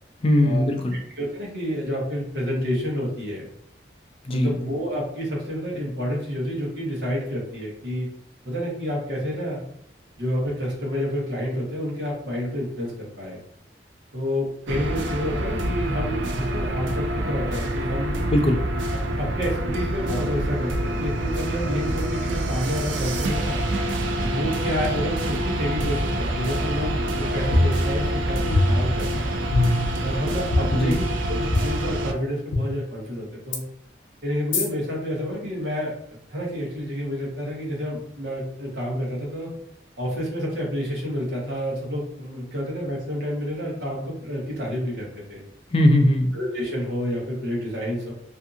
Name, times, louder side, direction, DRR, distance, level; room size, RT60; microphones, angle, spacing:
voice 1, 0.2-1.0 4.2-4.5 18.3-18.6 30.7-31.0 45.7-46.3, left 1 dB, 30° left, 4 dB, 0.3 m, -19 dB
voice 2, 1.2-3.5 4.3-8.1 8.4-9.6 10.2-13.4 14.1-18.2 19.1-23.6 24.2-29.3 30.0-33.6 34.2-39.5 40.0-45.4 46.3-48.1, equal, 70° right, -3 dB, 1.0 m, -29 dB
sound 1, 14.7-32.1, right 1 dB, 90° right, 0.4 m, -26 dB
sound 2, 27.5-28.2 28.5-29.1 29.5-30.0 30.5-30.6 31.5-31.6 32.5-32.6 33.5-33.6 34.5-34.7, left 2 dB, 85° left, 0.6 m, -22 dB
2.6 x 2.5 x 2.5 m, 0.71 s
head